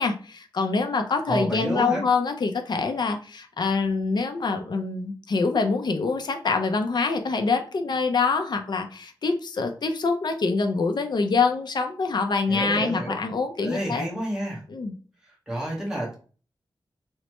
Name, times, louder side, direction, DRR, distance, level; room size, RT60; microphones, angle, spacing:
voice 1, 0.0-14.1 14.7-14.9, left 4 dB, 60° left, 5 dB, 0.5 m, -25 dB
voice 2, 1.3-2.0 12.5-13.2 13.6-14.6 15.5-16.1, right 1 dB, 5° right, -4 dB, 1.1 m, -29 dB
3.0 x 2.1 x 2.9 m, 0.39 s
wide cardioid pair, 110°, 8 cm